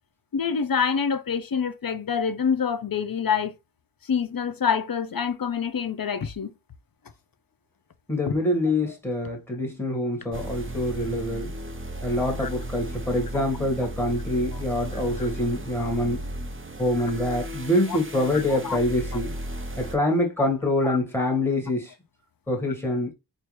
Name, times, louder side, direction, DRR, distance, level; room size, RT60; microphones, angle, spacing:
voice 1, 0.3-3.6 4.1-6.5 8.3-8.4 12.4-12.5 15.2-15.3 17.9-18.0 18.3-18.8 20.8-21.0, left 6 dB, 55° left, 0.5 m, -26 dB
voice 2, 8.1-11.5 12.0-16.2 16.8-19.3 19.8-21.9 22.5-23.1, left 1 dB, 5° left, 1.4 m, -25 dB
sound 1, 10.3-20.0, right 1 dB, 30° right, 0.8 m, -35 dB
4.5 x 2.6 x 3.1 m
wide cardioid pair, 50°, 42 cm